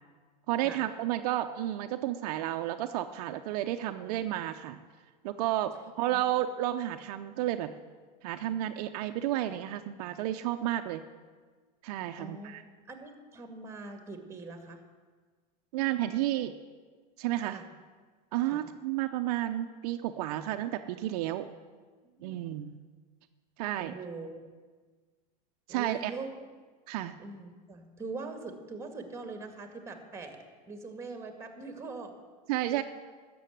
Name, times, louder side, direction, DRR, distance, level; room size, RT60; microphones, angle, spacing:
voice 1, 0.5-4.8 5.2-7.7 8.2-11.0 11.8-12.6 15.7-16.5 17.2-17.6 18.3-21.5 22.2-22.8 23.6-24.0 25.7-26.1 26.9-27.2 32.5-32.8, right 13 dB, 65° right, 7 dB, 0.7 m, -31 dB
voice 2, 12.1-12.6 12.9-14.8 17.4-17.7 18.5-18.6 22.2-22.4 23.8-24.4 25.7-26.3 27.2-30.4 30.7-32.1 32.8-32.9, right 3 dB, 15° right, 6 dB, 1.9 m, -42 dB
12.5 x 7.0 x 9.1 m, 1.5 s
supercardioid pair, 125°, 21 cm